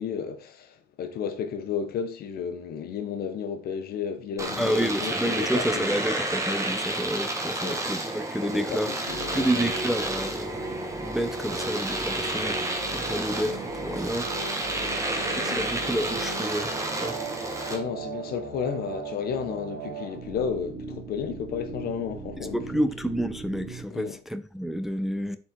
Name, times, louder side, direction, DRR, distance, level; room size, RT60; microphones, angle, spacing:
voice 1, 0.0-5.9 7.6-7.8 8.4-9.7 14.8-15.0 15.4-15.9 17.7-22.6 23.9-24.2, left 7 dB, 65° left, 1.2 m, -33 dB
Domestic sounds home sounds, 4.4-17.8, right 2 dB, 20° right, 1.5 m, -31 dB
voice 2, 4.6-8.9 9.3-10.6 11.0-14.3 15.4-17.2 22.5-25.4, equal, ahead, 0.5 m, -29 dB
sound 1, 9.1-23.8, right 3 dB, 70° right, 1.6 m, -38 dB
7.3 x 4.4 x 4.6 m
cardioid pair, 110°, 17 cm